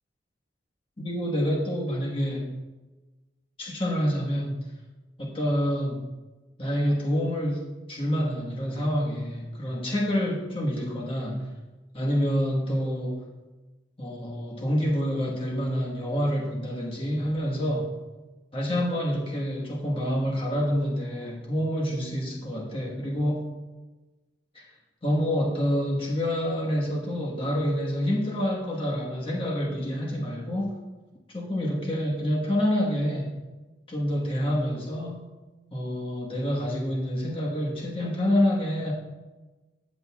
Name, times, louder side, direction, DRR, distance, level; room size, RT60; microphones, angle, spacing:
voice 1, 1.0-2.5 3.6-4.6 5.2-6.1 6.6-11.5 11.9-13.2 14.0-17.9 18.5-23.5 24.5-24.7 25.0-30.7 31.3-33.3 33.9-35.3 35.7-38.9, equal, 30° left, -3 dB, 1.2 m, -27 dB
14.5 x 7.7 x 2.3 m, 1.2 s
head